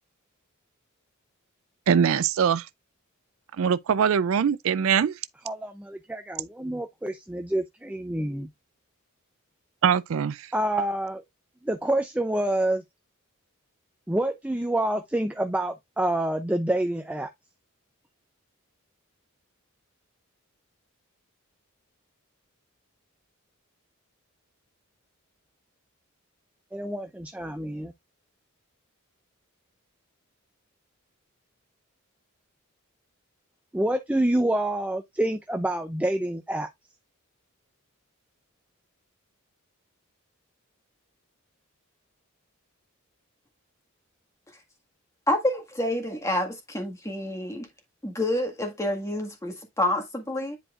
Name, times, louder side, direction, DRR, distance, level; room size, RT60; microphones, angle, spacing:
voice 1, 1.9-2.7 3.6-5.2 9.8-10.5, right 7 dB, 65° right, 0.4 m, -22 dB
voice 2, 5.4-8.5 10.5-11.2 11.6-12.8 14.1-17.3 26.7-27.9 33.7-36.7, right 1 dB, 5° right, 0.5 m, -27 dB
voice 3, 45.3-47.7 48.0-50.6, left 1 dB, 15° left, 1.8 m, -28 dB
10.5 x 4.5 x 2.5 m
head